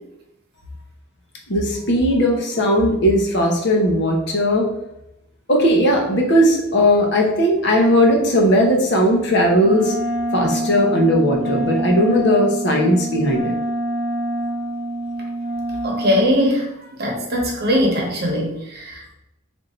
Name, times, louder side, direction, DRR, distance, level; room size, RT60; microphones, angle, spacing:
voice 1, 1.5-4.7 5.5-9.9 10.3-13.5, equal, 55° left, 0 dB, 0.9 m, -17 dB
Wind instrument woodwind instrument, 9.6-16.4, right 1 dB, 30° right, 0.7 m, -26 dB
voice 2, 15.8-16.7 17.0-19.1, equal, 50° right, 0 dB, 1.0 m, -20 dB
3.5 x 2.6 x 4.3 m, 0.86 s
head